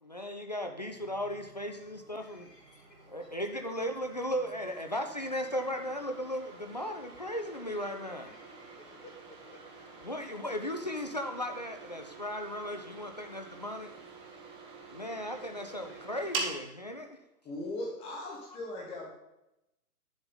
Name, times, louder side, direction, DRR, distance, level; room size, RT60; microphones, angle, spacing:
voice 1, 0.0-2.5 3.1-8.3 10.0-13.9 14.9-17.2, equal, 30° left, 5 dB, 0.3 m, -36 dB
sound 1, 0.9-16.6, right 3 dB, 10° right, 0.7 m, -46 dB
voice 2, 2.2-3.3 8.2-9.1 12.1-12.2 15.0-16.2, left 1 dB, 90° left, -1 dB, 2.9 m, -58 dB
voice 3, 17.4-19.1, left 2 dB, 15° left, -1 dB, 1.1 m, -38 dB
9.6 x 7.0 x 3.8 m, 0.89 s
figure-of-eight pair, 125°, 47 cm